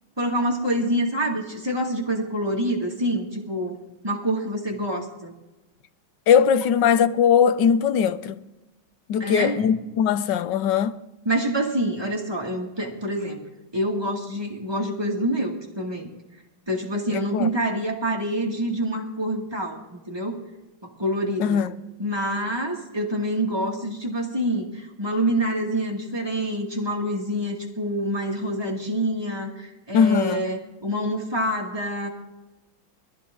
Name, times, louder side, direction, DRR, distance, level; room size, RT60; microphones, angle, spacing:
voice 1, 0.2-5.3 9.2-9.6 11.3-13.4 13.7-16.1 16.7-20.4 20.8-21.6 22.0-32.1, right 1 dB, 10° right, 2.2 m, -26 dB
voice 2, 6.3-8.4 9.1-11.0 17.1-17.5 21.4-21.7 29.9-30.4, left 7 dB, 70° left, 1.3 m, -20 dB
21.5 x 14.5 x 3.9 m
omnidirectional pair, 2.2 m